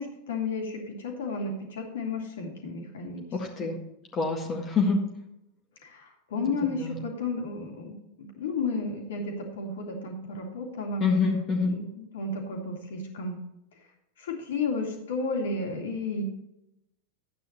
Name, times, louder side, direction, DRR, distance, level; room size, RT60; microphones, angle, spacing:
voice 1, 0.0-3.2 3.6-3.7 5.8-11.0 11.6-13.4 14.2-16.2, left 3 dB, 60° left, 1 dB, 3.0 m, -33 dB
voice 2, 3.3-3.8 4.1-5.0 6.7-7.0 11.0-11.7, left 4 dB, 25° left, 1 dB, 1.8 m, -26 dB
12.5 x 9.4 x 3.0 m, 0.84 s
figure-of-eight pair, 90°, 0 cm